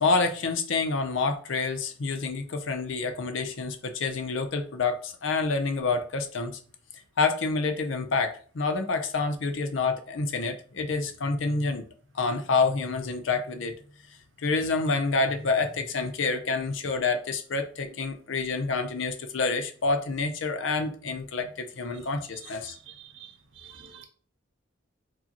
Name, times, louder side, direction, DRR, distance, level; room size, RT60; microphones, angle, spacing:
voice 1, 0.0-6.5 7.2-11.8 12.1-13.8 14.4-22.8, left 4 dB, 70° left, 7 dB, 0.5 m, -28 dB
voice 2, 22.9-23.3 23.6-24.0, right 9 dB, 60° right, 6 dB, 0.4 m, -48 dB
4.7 x 2.7 x 2.9 m, 0.43 s
head